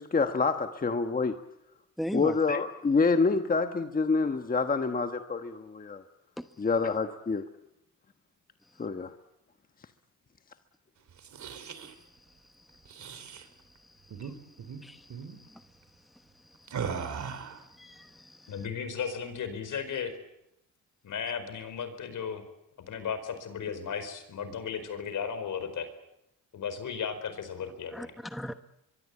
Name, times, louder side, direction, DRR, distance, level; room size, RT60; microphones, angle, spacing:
voice 1, 0.0-1.4 2.1-6.0 6.6-7.5 8.8-9.1, left 4 dB, 25° left, 1.2 m, -27 dB
voice 2, 2.0-2.3 14.2-14.3 14.8-15.0 17.8-18.0 27.9-28.5, equal, ahead, 1.0 m, -35 dB
sound 1, 11.1-11.9 12.8-13.4 14.1-14.3 14.6-14.8 15.1-15.4 16.7-17.6, right 6 dB, 55° right, 3.0 m, -38 dB
voice 3, 18.5-20.1 21.0-22.4 22.8-25.9 26.5-28.1, left 7 dB, 65° left, 4.7 m, -35 dB
24.5 x 23.0 x 8.4 m
cardioid pair, 110°, 34 cm